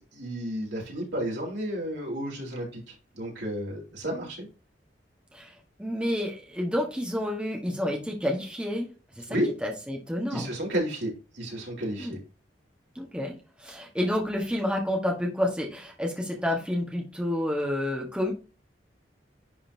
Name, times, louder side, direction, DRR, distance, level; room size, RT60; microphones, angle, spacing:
voice 1, 0.0-4.5 9.3-9.5 10.3-12.2, equal, 75° right, -3 dB, 4.0 m, -32 dB
voice 2, 5.8-8.9 9.2-10.5 12.0-12.1 12.9-18.3, left 1 dB, 5° right, 0 dB, 1.4 m, -29 dB
10.5 x 4.1 x 2.8 m, 0.33 s
head